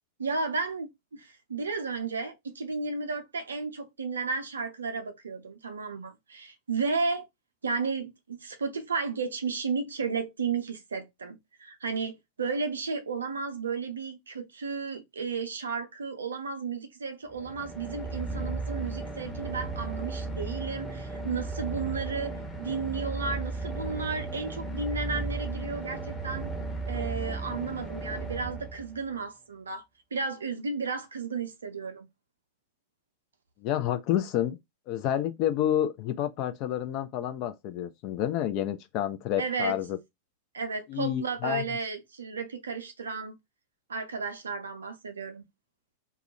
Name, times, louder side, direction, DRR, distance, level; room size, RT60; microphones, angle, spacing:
voice 1, 0.2-7.3 7.6-26.5 26.8-29.8 30.1-32.1 39.4-39.8 40.5-43.4 43.9-45.4, right 4 dB, 70° right, 0.5 m, -33 dB
sound 1, 17.3-29.2, right 3 dB, 5° left, 0.9 m, -35 dB
voice 2, 33.6-34.6 34.9-40.0 40.9-41.6, left 11 dB, 40° left, 0.3 m, -29 dB
2.3 x 2.1 x 2.8 m
figure-of-eight pair, 90°, 0 cm